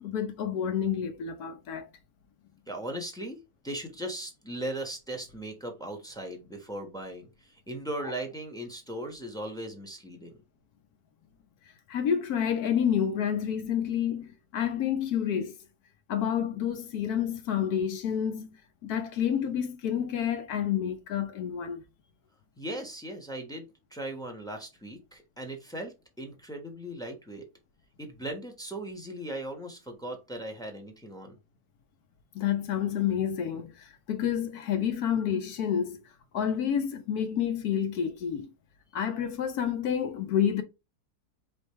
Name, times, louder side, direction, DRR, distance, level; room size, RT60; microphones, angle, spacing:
voice 1, 0.0-1.9 11.9-15.6 16.1-18.5 18.8-21.8 32.3-33.7 34.1-36.0 36.3-38.5 38.9-40.6, left 8 dB, 75° left, 1.3 m, -29 dB
voice 2, 2.7-3.4 3.6-10.4 22.6-23.6 23.9-27.5 28.0-31.4, right 1 dB, 5° left, 0.8 m, -38 dB
5.1 x 3.1 x 3.1 m
omnidirectional pair, 1.7 m